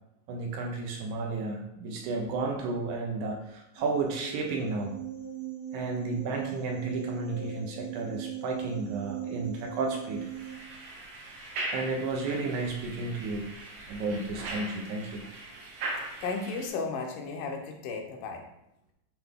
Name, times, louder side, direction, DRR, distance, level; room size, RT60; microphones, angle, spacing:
voice 1, 0.3-5.0 5.7-10.3 11.7-13.5 13.9-15.2, right 3 dB, 75° right, 1 dB, 2.1 m, -32 dB
sound 1, 3.8-10.5, right 9 dB, 55° right, 1.6 m, -39 dB
sound 2, 10.1-16.7, right 2 dB, 90° right, 2.7 m, -40 dB
voice 2, 16.2-18.4, left 4 dB, 75° left, 3 dB, 2.3 m, -34 dB
8.0 x 3.3 x 3.6 m, 0.84 s
omnidirectional pair, 3.9 m